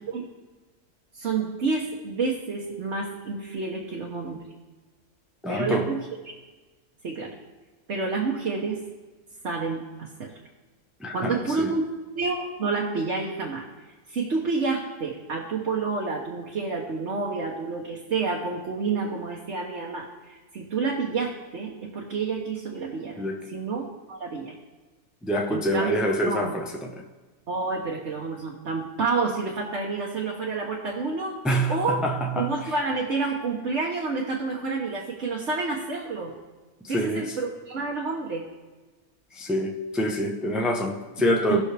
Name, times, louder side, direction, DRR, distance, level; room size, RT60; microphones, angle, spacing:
voice 1, 1.1-4.4 5.5-6.0 7.0-7.3 7.9-8.8 9.4-10.3 11.1-11.8 12.1-13.6 14.1-23.8 24.1-24.5 25.5-25.9 26.2-26.5 27.5-31.4 31.7-32.0 32.3-36.3 36.9-38.4 41.5-41.6, right 4 dB, 50° right, 1.3 m, -29 dB
voice 2, 5.4-5.9 11.0-11.7 23.2-23.4 25.2-26.9 31.4-32.5 36.8-37.3 39.3-41.6, equal, ahead, 0.7 m, -26 dB
18.5 x 6.2 x 3.4 m
omnidirectional pair, 1.6 m